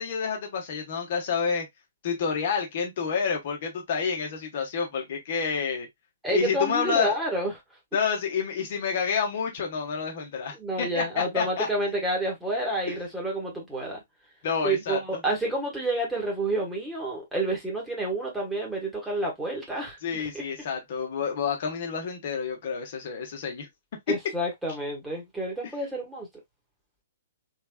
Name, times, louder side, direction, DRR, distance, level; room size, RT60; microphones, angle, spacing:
voice 1, 0.0-1.6 2.0-5.9 6.3-7.1 7.9-11.7 12.9-13.0 14.4-15.2 20.0-23.7, left 6 dB, 45° left, 1.2 m, -29 dB
voice 2, 6.2-7.5 10.5-14.0 14.6-20.4 24.1-26.3, right 1 dB, 5° right, 1.5 m, -29 dB
3.8 x 3.4 x 2.2 m
figure-of-eight pair, 120°, 0 cm